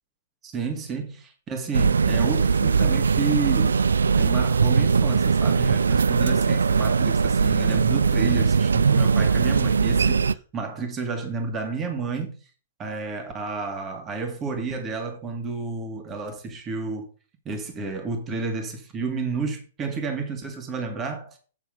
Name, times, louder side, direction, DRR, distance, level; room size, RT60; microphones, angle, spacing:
voice 1, 0.4-3.8 4.1-12.4 12.8-17.1 17.4-21.4, right 4 dB, 20° right, 2.4 m, -31 dB
sound 1, 1.7-10.3, right 5 dB, 70° right, 0.4 m, -20 dB
8.9 x 6.9 x 5.1 m
figure-of-eight pair, 110°, 0 cm